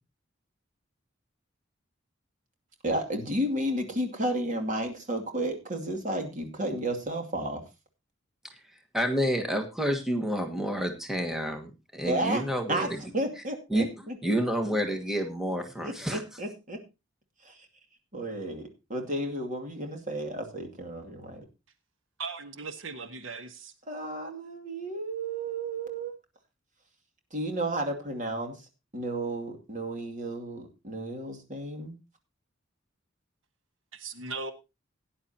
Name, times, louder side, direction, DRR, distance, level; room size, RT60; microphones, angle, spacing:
voice 1, 2.8-7.6 12.0-12.4 12.7-12.9 13.1-14.2 15.8-16.8 17.4-17.7 18.1-21.5 23.9-26.1 27.3-28.6 28.9-32.0, right 1 dB, 40° right, 2.5 m, -32 dB
voice 2, 8.9-13.0 13.7-16.2, equal, ahead, 1.5 m, -29 dB
voice 3, 22.2-23.7 33.9-34.5, right 4 dB, 85° right, 1.2 m, -38 dB
17.5 x 10.0 x 2.9 m
head